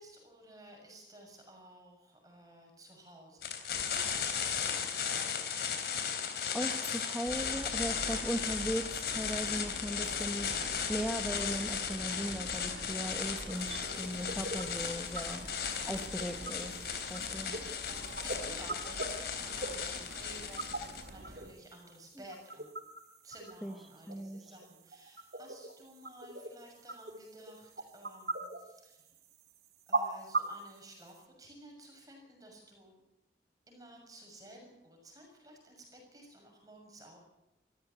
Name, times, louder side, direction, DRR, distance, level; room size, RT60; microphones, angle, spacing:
voice 1, 0.0-3.5 4.3-5.5 17.9-19.0 19.4-20.7 21.1-22.7 23.2-29.1 29.9-33.0 33.7-37.2, right 1 dB, 20° right, 1 dB, 6.6 m, -54 dB
sound 1, 3.4-21.1, left 7 dB, 60° left, 3.3 m, -36 dB
voice 2, 6.5-10.5 10.9-15.5 15.9-16.7 17.1-17.5 23.6-23.8 24.1-24.5, equal, ahead, 3 dB, 1.3 m, -38 dB
Subway metro underground, 7.3-21.5, right 1 dB, 85° right, 2.1 m, -47 dB
sound 2, 13.5-31.2, right 3 dB, 60° right, 3.1 m, -42 dB
24.5 x 14.5 x 8.4 m, 0.95 s
head